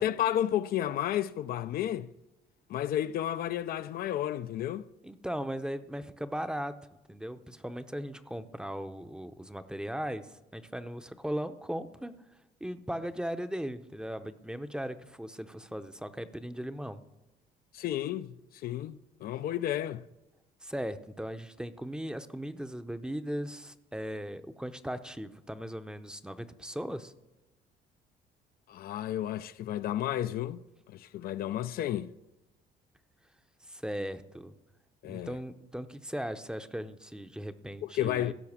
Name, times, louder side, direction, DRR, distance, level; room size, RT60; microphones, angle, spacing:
voice 1, 0.0-2.1 2.7-4.8 17.7-18.4 18.6-20.0 28.7-30.6 30.9-32.1 35.0-35.4 37.8-38.3, left 11 dB, 65° left, 0.5 m, -32 dB
voice 2, 5.0-6.7 7.1-12.1 12.6-17.0 20.6-27.1 33.7-34.5 35.1-38.3, equal, 5° right, 0.7 m, -38 dB
15.5 x 5.8 x 7.2 m
cardioid pair, 110°, 17 cm